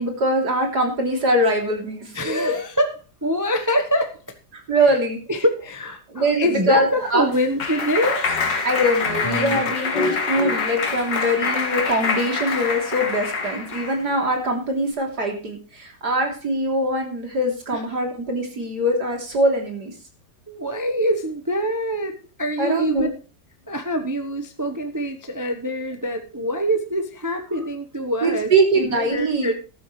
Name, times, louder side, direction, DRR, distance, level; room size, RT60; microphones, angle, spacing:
voice 1, 0.0-2.6 4.5-5.2 6.1-7.3 8.6-19.9 22.6-23.1 27.5-27.6 28.2-29.5, right 1 dB, 55° right, 2 dB, 3.8 m, -22 dB
voice 2, 2.1-2.9 3.2-4.2 4.9-5.0 5.3-8.4 17.7-17.8 20.5-23.1 23.7-29.5, equal, 15° right, 5 dB, 0.8 m, -25 dB
Clapping, 6.8-14.0, left 4 dB, 70° left, 2.4 m, -25 dB
14.0 x 12.0 x 3.3 m, 0.35 s
omnidirectional pair, 2.0 m